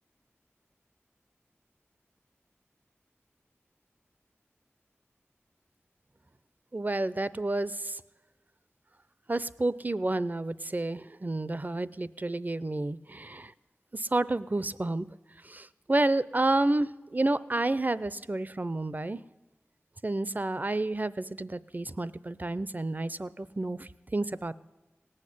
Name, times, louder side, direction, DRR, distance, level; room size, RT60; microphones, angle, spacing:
voice 1, 6.7-8.0 9.3-13.5 13.9-15.1 15.5-19.2 20.0-24.5, right 2 dB, 35° right, 16 dB, 0.6 m, -30 dB
18.0 x 6.6 x 9.9 m, 1.1 s
wide cardioid pair, 40°, 5 cm